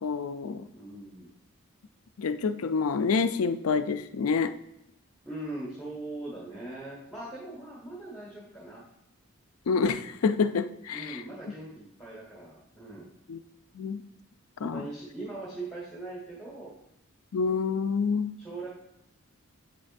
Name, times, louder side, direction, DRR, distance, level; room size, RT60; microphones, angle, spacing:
voice 1, 0.0-0.7 2.2-4.5 9.7-11.2 13.3-13.4 13.7-14.0 14.6-14.9 17.3-18.4, left 5 dB, 80° left, 11 dB, 0.4 m, -27 dB
voice 2, 0.7-1.3 5.2-8.8 10.9-13.1 14.6-16.7 18.4-18.7, right 2 dB, ahead, -6 dB, 1.7 m, -40 dB
8.2 x 6.4 x 2.6 m, 0.84 s
head